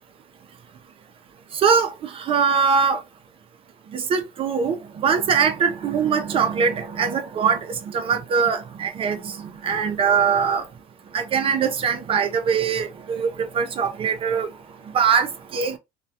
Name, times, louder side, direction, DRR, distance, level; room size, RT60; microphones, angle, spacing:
voice 1, 1.5-3.0 3.9-9.3 9.6-10.6 11.1-14.5 14.9-15.8, right 6 dB, 35° right, 0.4 m, -22 dB
2.2 x 2.1 x 2.6 m
cardioid pair, 125°, 15 cm